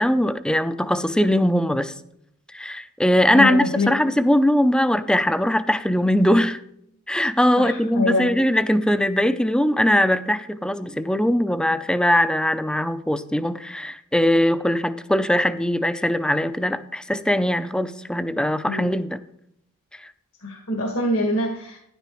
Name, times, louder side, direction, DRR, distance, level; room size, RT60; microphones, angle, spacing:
voice 1, 0.0-1.9 2.5-6.6 7.1-19.2 19.9-20.1, left 1 dB, 5° left, 12 dB, 0.4 m, -21 dB
voice 2, 3.3-3.9 7.6-8.4 18.7-18.9 20.4-21.8, left 1 dB, 75° left, 2 dB, 1.5 m, -24 dB
12.0 x 10.5 x 3.0 m, 0.74 s
head